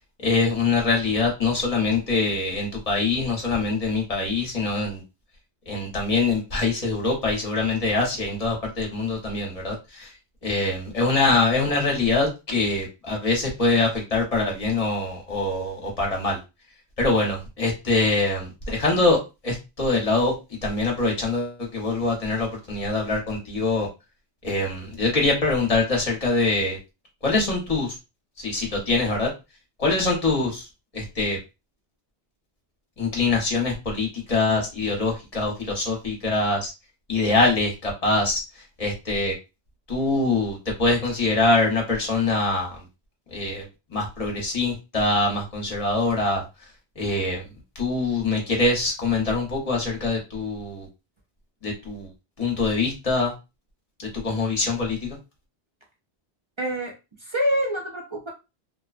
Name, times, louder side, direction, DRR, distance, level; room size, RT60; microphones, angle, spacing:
voice 1, 0.2-5.0 5.7-10.1 10.4-16.4 17.0-20.3 20.6-23.9 24.4-26.8 27.2-28.0 28.4-29.3 29.8-30.6 30.9-31.4 33.0-36.7 37.1-38.4 38.8-39.3 39.9-42.8 43.3-43.7 43.9-46.4 47.0-47.4 47.8-50.9 51.6-52.1 52.4-53.3 54.0-55.2, left 3 dB, 35° left, -1 dB, 0.9 m, -24 dB
voice 2, 56.6-58.3, equal, 45° right, 0 dB, 0.4 m, -26 dB
2.5 x 2.2 x 2.4 m, 0.26 s
omnidirectional pair, 1.1 m